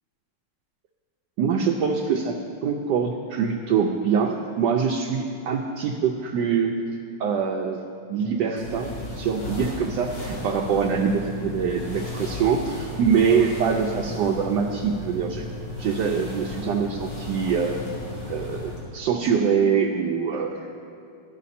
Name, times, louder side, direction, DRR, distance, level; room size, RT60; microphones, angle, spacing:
voice 1, 1.4-2.4 2.6-6.8 7.2-7.8 8.1-15.5 15.8-17.8 18.3-20.5, right 6 dB, 75° right, 0 dB, 1.2 m, -24 dB
sound 1, 8.6-18.9, left 2 dB, 80° left, 3.1 m, -35 dB
11.5 x 8.2 x 4.2 m, 2.6 s
omnidirectional pair, 2.0 m